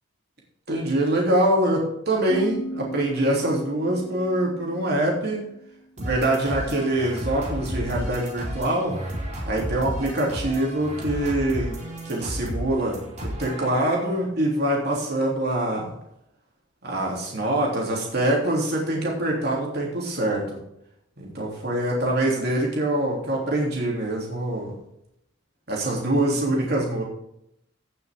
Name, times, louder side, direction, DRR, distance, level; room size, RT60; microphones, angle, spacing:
voice 1, 0.7-5.4 6.0-9.0 9.4-11.8 12.0-15.9 16.8-20.6 21.2-24.7 25.7-27.0, right 1 dB, 55° right, -2 dB, 3.4 m, -24 dB
sound 1, 2.3-5.9, equal, 50° left, 1.3 m, -37 dB
sound 2, 6.0-14.2, equal, 35° right, 4.0 m, -33 dB
16.0 x 6.8 x 3.7 m, 0.77 s
head